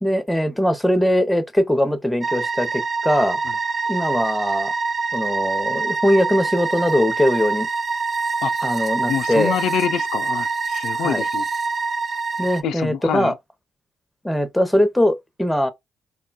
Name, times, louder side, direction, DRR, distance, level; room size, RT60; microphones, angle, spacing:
voice 1, 0.0-3.4 3.9-4.7 5.1-7.7 8.6-9.5 11.0-11.2 12.4-13.3 14.2-15.7, left 1 dB, 5° left, 0.7 m, -21 dB
sound 1, 2.2-12.6, right 4 dB, 45° right, 0.3 m, -25 dB
voice 2, 8.4-8.7 9.1-11.5 12.6-13.3, left 9 dB, 80° left, 0.3 m, -26 dB
3.7 x 2.2 x 2.3 m
supercardioid pair, 65°, 0 cm